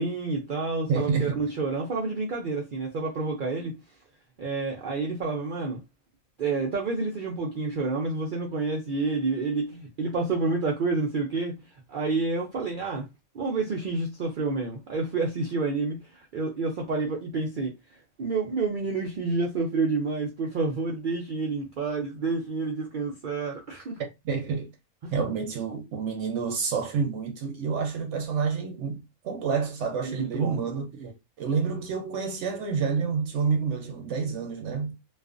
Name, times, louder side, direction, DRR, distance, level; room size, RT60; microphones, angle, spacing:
voice 1, 0.0-3.8 4.4-5.8 6.4-11.6 11.9-13.1 13.3-17.7 18.2-24.0 25.0-25.2 30.0-30.6, right 3 dB, 85° right, 0.4 m, -29 dB
voice 2, 0.9-1.4 24.0-24.7 25.1-34.9, right 5 dB, 65° right, 0.8 m, -29 dB
2.4 x 2.4 x 2.4 m
omnidirectional pair, 1.5 m